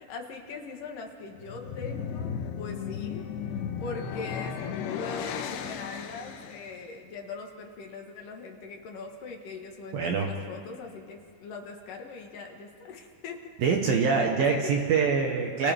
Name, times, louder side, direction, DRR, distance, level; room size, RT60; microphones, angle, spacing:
voice 1, 0.0-3.3 3.8-4.6 4.9-13.5 14.4-14.8, left 4 dB, 60° left, 1 dB, 2.6 m, -41 dB
sound 1, 1.3-6.7, left 7 dB, 75° left, 3.1 m, -35 dB
voice 2, 9.9-10.3 13.6-15.7, right 5 dB, 65° right, 2 dB, 2.5 m, -24 dB
30.0 x 28.0 x 3.6 m, 2.1 s
omnidirectional pair, 5.3 m